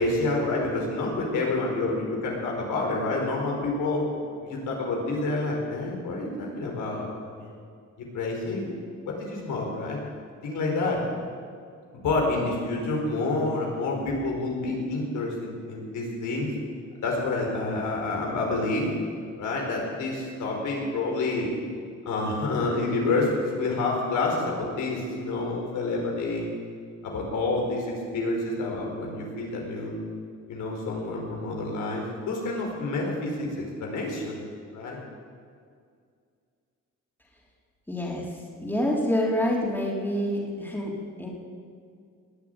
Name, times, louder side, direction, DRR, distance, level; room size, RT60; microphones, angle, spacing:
voice 1, 0.0-4.0 4.4-7.5 8.1-8.8 9.0-10.0 10.4-11.0 12.0-16.5 17.0-18.9 19.4-21.5 22.0-26.5 27.0-30.0 30.5-33.5 33.8-34.5 34.7-35.0, left 2 dB, 80° left, -1 dB, 4.8 m, -28 dB
voice 2, 37.9-38.2 38.6-41.3, left 1 dB, 5° left, -3 dB, 3.7 m, -27 dB
20.0 x 7.4 x 9.7 m, 2.2 s
cardioid pair, 90°, 30 cm